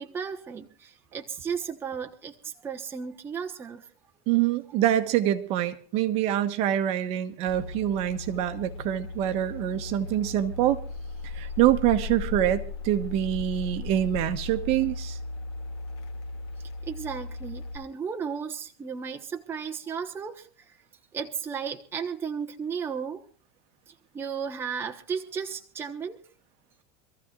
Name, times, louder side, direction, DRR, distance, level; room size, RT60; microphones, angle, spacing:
voice 1, 0.0-3.9 16.8-20.8 21.1-23.2 23.9-26.2, right 6 dB, 15° right, 4 dB, 1.1 m, -34 dB
voice 2, 4.3-10.8 11.2-15.2, right 12 dB, 45° right, 9 dB, 1.3 m, -25 dB
sound 1, 7.5-17.8, left 4 dB, 80° left, 2.3 m, -37 dB
26.5 x 14.5 x 2.5 m, 0.40 s
supercardioid pair, 155°, 14 cm